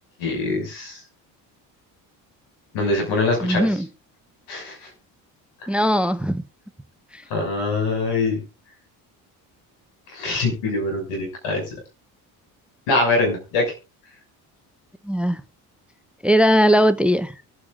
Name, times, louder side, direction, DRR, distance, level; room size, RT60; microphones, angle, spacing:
voice 1, 0.2-1.0 2.7-3.8 4.5-4.9 5.6-5.7 7.3-8.4 10.1-11.6 12.9-13.7, left 3 dB, 80° left, 6.4 m, -23 dB
voice 2, 3.4-3.9 5.7-6.4 7.1-7.2 15.0-15.4 16.2-17.3, equal, ahead, 0.8 m, -19 dB
24.0 x 8.6 x 2.5 m
supercardioid pair, 65°, 46 cm